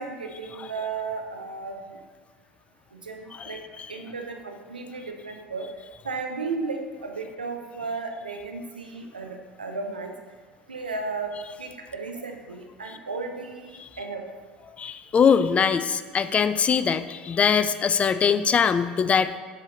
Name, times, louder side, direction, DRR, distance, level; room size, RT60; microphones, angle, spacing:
voice 1, 0.0-2.0 2.9-3.6 3.9-5.7 6.0-10.1 10.7-14.2, right 4 dB, 85° right, 3 dB, 0.6 m, -34 dB
voice 2, 14.8-19.4, left 6 dB, 25° left, 12 dB, 0.3 m, -22 dB
6.9 x 4.5 x 3.7 m, 1.5 s
figure-of-eight pair, 70°, 5 cm